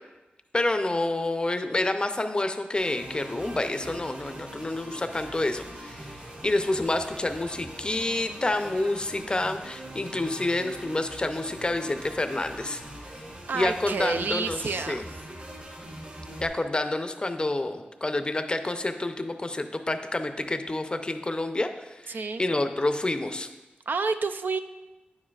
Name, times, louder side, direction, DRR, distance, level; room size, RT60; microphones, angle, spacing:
voice 1, 0.5-12.8 13.1-13.2 13.5-15.0 16.4-23.5, left 2 dB, 25° left, 8 dB, 0.5 m, -28 dB
sound 1, 2.8-16.5, right 1 dB, 40° right, 2.7 m, -42 dB
voice 2, 13.5-15.1 22.1-22.4 23.9-24.6, right 4 dB, 65° right, 8 dB, 0.3 m, -29 dB
9.3 x 7.4 x 2.4 m, 1.1 s
wide cardioid pair, 80°, 3 cm